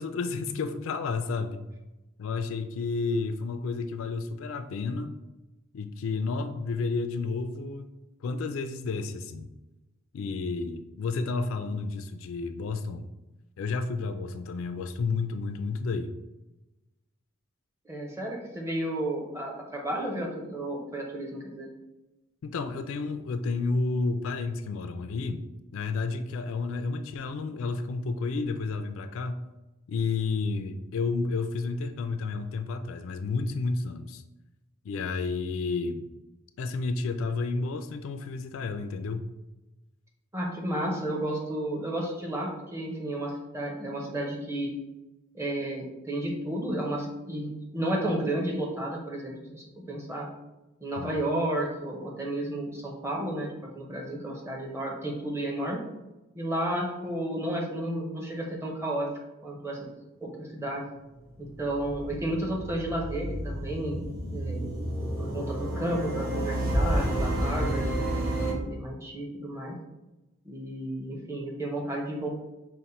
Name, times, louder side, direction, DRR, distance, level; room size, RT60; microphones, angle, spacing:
voice 1, 0.0-1.6 2.2-5.1 5.7-7.9 8.2-9.5 10.1-13.1 13.6-16.1 22.4-25.5 25.7-29.5 29.9-34.2 34.8-36.1 36.6-39.3 51.0-51.1, left 4 dB, 70° left, 9 dB, 0.3 m, -31 dB
voice 2, 17.9-21.7 40.3-44.7 45.3-50.3 50.8-53.5 53.7-55.8 56.3-59.1 59.4-59.8 60.2-60.8 61.4-64.0 64.3-64.7 65.2-68.1 68.4-69.8 70.5-72.3, right 1 dB, 10° right, -1 dB, 0.7 m, -32 dB
sound 1, 61.3-68.5, right 1 dB, 45° right, 1.3 m, -30 dB
5.2 x 2.1 x 4.2 m, 1.0 s
head